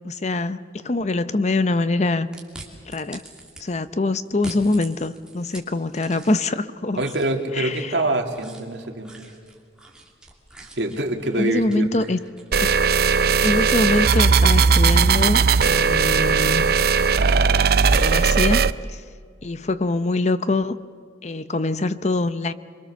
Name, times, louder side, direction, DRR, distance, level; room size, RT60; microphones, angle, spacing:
voice 1, 0.0-2.3 2.9-3.2 3.6-7.0 7.5-8.0 11.4-12.2 12.6-12.7 13.4-16.7 17.5-18.6 18.9-19.0 19.4-20.8 21.2-22.5, left 2 dB, 40° left, 13 dB, 0.7 m, -24 dB
sound 1, 2.3-3.6 4.2-6.6 6.9-15.6, right 2 dB, 5° right, 2.8 m, -45 dB
voice 2, 7.0-9.1 10.8-11.9, right 1 dB, 75° right, 3 dB, 2.5 m, -25 dB
sound 2, 12.5-18.7, right 5 dB, 55° right, 0.5 m, -18 dB
27.5 x 23.0 x 6.9 m, 2.1 s
head